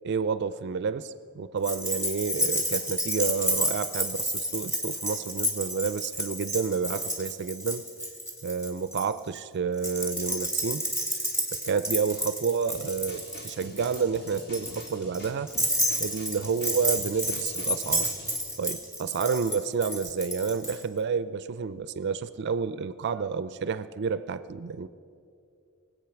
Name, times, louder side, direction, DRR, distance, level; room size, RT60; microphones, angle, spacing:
voice 1, 0.0-7.8 8.4-10.9 11.5-15.5 16.0-18.1 18.6-24.9, right 5 dB, 50° right, 14 dB, 0.4 m, -30 dB
Keys jangling, 1.6-9.1 9.8-20.8, equal, 15° left, 2.2 m, -30 dB
sound 1, 12.7-18.4, left 1 dB, 45° left, 1.9 m, -45 dB
21.5 x 8.3 x 5.9 m, 2.5 s
head